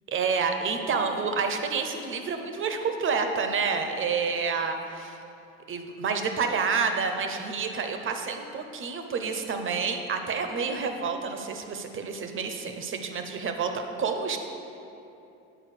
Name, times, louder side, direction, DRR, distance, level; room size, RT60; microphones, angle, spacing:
voice 1, 0.1-5.2 5.7-14.4, right 5 dB, 40° right, 6 dB, 0.9 m, -29 dB
9.0 x 4.3 x 6.5 m, 2.8 s
supercardioid pair, 85°, 31 cm